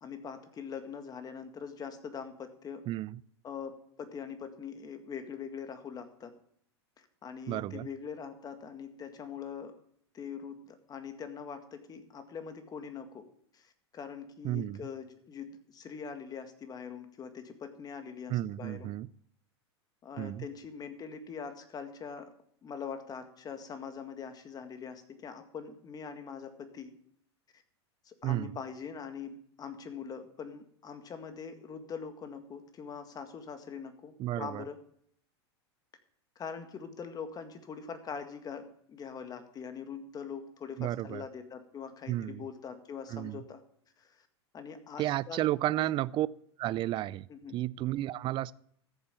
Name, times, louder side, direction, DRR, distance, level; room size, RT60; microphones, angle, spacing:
voice 1, 0.0-2.8 3.4-6.3 7.0-9.7 10.1-13.2 13.5-18.9 20.0-22.3 22.6-26.9 28.1-34.8 36.4-43.6 44.0-44.3 44.5-45.9 47.3-47.7, left 6 dB, 25° left, 8 dB, 1.9 m, -43 dB
voice 2, 2.9-3.2 7.5-7.9 14.4-14.8 18.3-19.1 20.2-20.5 28.2-28.6 34.2-34.6 40.8-41.2 42.1-42.5 43.1-43.4 45.0-46.3 46.6-47.3 47.5-48.5, right 15 dB, 35° right, 20 dB, 0.5 m, -32 dB
14.0 x 7.2 x 7.1 m, 0.66 s
hypercardioid pair, 110°, 14 cm